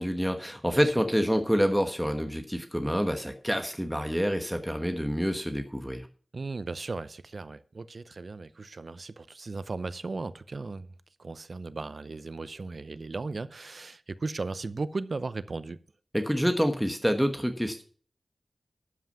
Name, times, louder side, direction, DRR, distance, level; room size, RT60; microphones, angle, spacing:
voice 1, 0.0-6.1 16.1-17.8, equal, ahead, 1.2 m, -27 dB
voice 2, 6.3-15.8, right 3 dB, 60° right, 0.6 m, -36 dB
12.5 x 5.8 x 5.5 m
wide cardioid pair, 80°, 0 cm